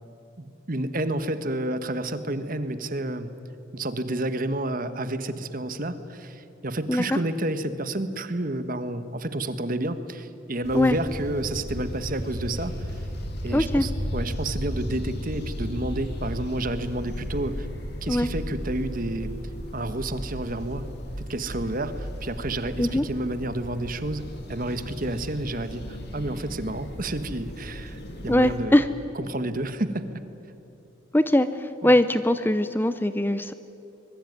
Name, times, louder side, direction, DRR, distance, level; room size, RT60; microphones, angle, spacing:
voice 1, 0.4-3.3 3.7-13.0 13.4-17.7 18.0-19.4 19.7-20.8 21.3-24.2 24.5-28.8 29.1-30.2 31.8-32.0, right 1 dB, 45° right, 11 dB, 1.4 m, -30 dB
voice 2, 6.9-7.2 10.7-11.0 13.5-13.9 18.1-18.3 22.8-23.0 28.3-28.9 31.1-33.5, left 1 dB, 10° left, 12 dB, 0.6 m, -21 dB
sound 1, 10.6-28.6, equal, 55° left, 3.4 m, -35 dB
25.5 x 21.5 x 9.5 m, 3.0 s
head